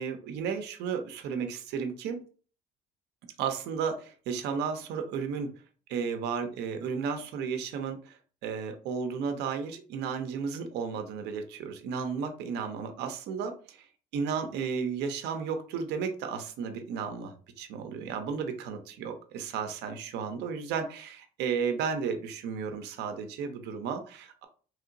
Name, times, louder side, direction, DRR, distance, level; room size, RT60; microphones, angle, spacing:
voice 1, 0.0-2.2 3.4-5.5 5.9-13.8 14.1-24.4, right 6 dB, 85° right, 6 dB, 0.6 m, -33 dB
3.0 x 2.8 x 2.5 m, 0.40 s
cardioid pair, 110°, 17 cm